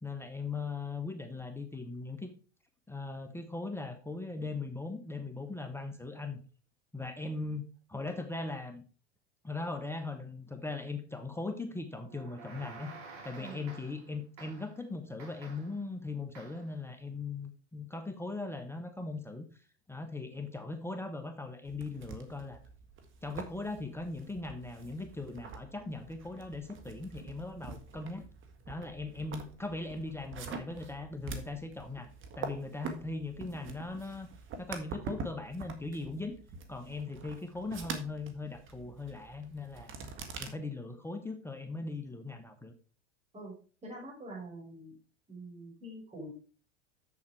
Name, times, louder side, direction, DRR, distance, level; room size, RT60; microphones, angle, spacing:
voice 1, 0.0-2.3 2.9-6.4 6.9-7.6 7.9-8.8 9.4-12.9 13.2-19.4 19.9-22.6 23.2-28.3 28.7-32.1 32.3-34.3 34.6-36.3 36.7-39.9 40.4-42.7, left 3 dB, 5° left, 6 dB, 1.1 m, -39 dB
sound 1, 12.1-14.1 14.4-14.8 15.2-15.8 16.3-16.7, right 4 dB, 65° right, 3.6 m, -50 dB
sound 2, 21.6-40.5, right 4 dB, 35° right, 1.7 m, -45 dB
voice 2, 43.8-44.9 45.3-46.3, right 1 dB, 20° right, -3 dB, 4.9 m, -45 dB
7.4 x 7.3 x 4.6 m, 0.38 s
hypercardioid pair, 95°, 34 cm